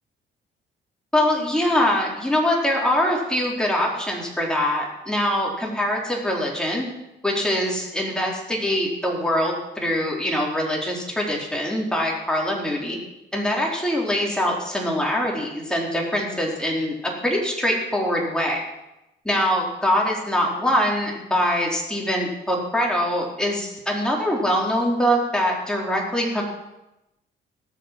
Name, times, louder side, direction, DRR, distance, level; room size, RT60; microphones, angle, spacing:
voice 1, 1.1-6.8 7.2-13.0 13.3-16.9 17.2-18.6 19.3-26.4, equal, 5° left, -2 dB, 4.1 m, -23 dB
19.0 x 7.0 x 6.1 m, 0.94 s
cardioid pair, 90°, 20 cm